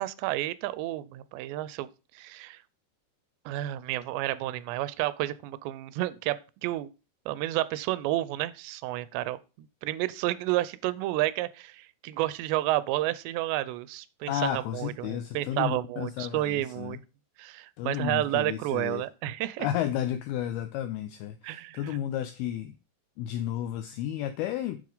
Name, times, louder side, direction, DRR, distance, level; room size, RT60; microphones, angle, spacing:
voice 1, 0.0-1.9 2.2-2.6 3.5-6.9 7.3-9.4 9.8-17.0 17.4-19.7 21.4-22.0, right 16 dB, 85° right, 2.7 m, -31 dB
voice 2, 14.3-17.0 17.8-19.0 19.6-22.8 23.2-24.8, left 11 dB, 90° left, 2.2 m, -32 dB
7.5 x 7.1 x 3.8 m
omnidirectional pair, 5.1 m